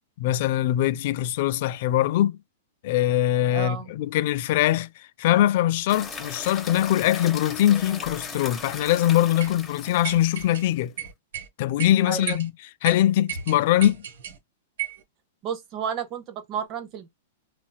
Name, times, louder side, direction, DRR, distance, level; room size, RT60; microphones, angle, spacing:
voice 1, 0.2-2.4 2.8-10.9 11.6-12.5 12.8-14.0, left 13 dB, 50° left, 0.3 m, -22 dB
voice 2, 3.5-3.9 12.0-12.4 15.4-17.1, right 8 dB, 30° right, 0.8 m, -32 dB
sound 1, 5.9-10.7, left 4 dB, 15° left, 0.8 m, -38 dB
sound 2, 9.4-9.5 10.0-10.6 11.0-11.5 11.8-11.9 12.3-12.5 12.8-12.9 13.3-14.4 14.8-15.0, right 10 dB, 75° right, 1.0 m, -34 dB
3.9 x 2.4 x 2.2 m
hypercardioid pair, 150°, 0 cm